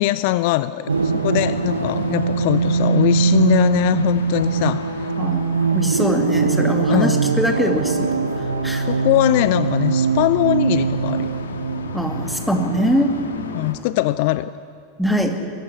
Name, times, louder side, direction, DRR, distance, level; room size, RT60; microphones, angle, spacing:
voice 1, 0.0-4.8 6.9-7.2 8.9-11.3 13.5-14.5, left 17 dB, 50° left, 16 dB, 0.5 m, -21 dB
sound 1, 0.9-13.7, left 4 dB, 70° left, 2.0 m, -34 dB
sound 2, 0.9-12.9, right 5 dB, 75° right, 0.9 m, -22 dB
voice 2, 5.2-8.9 11.9-13.2 15.0-15.4, equal, ahead, 3 dB, 2.5 m, -22 dB
22.0 x 15.5 x 9.8 m, 2.5 s
figure-of-eight pair, 85°, 0 cm